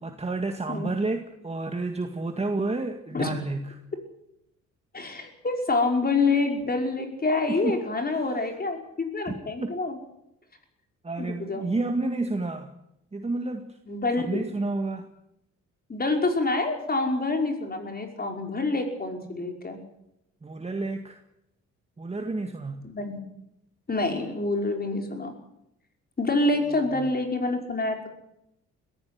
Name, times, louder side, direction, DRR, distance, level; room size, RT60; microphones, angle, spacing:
voice 1, 0.0-3.8 7.5-8.5 9.3-9.7 11.0-12.7 13.1-13.8 14.2-15.1 20.4-21.2 22.0-22.9 27.0-27.1, right 2 dB, 20° right, 5 dB, 2.0 m, -31 dB
voice 2, 4.9-10.0 11.2-11.7 13.9-14.3 15.9-19.8 22.8-23.2 23.9-25.3 26.2-28.1, left 3 dB, 30° left, 4 dB, 5.5 m, -27 dB
21.5 x 15.0 x 9.5 m, 0.82 s
cardioid pair, 90°, 30 cm